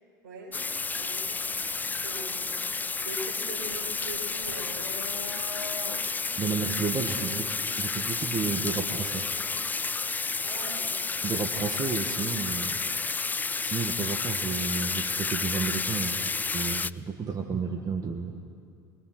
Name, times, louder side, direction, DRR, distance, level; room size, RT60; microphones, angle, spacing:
voice 1, 0.2-0.6 0.9-2.5 3.0-5.0 10.4-11.0, right 2 dB, 70° right, -1 dB, 6.5 m, -42 dB
sound 1, 0.5-16.9, left 4 dB, 15° left, 0.4 m, -31 dB
sound 2, 1.9-8.9, left 4 dB, 90° left, 1.3 m, -44 dB
voice 2, 6.4-9.3 9.6-9.7 11.2-12.8 13.6-18.4, right 5 dB, 35° right, 3 dB, 1.8 m, -32 dB
24.0 x 22.5 x 6.2 m, 2.3 s
hypercardioid pair, 70°, 11 cm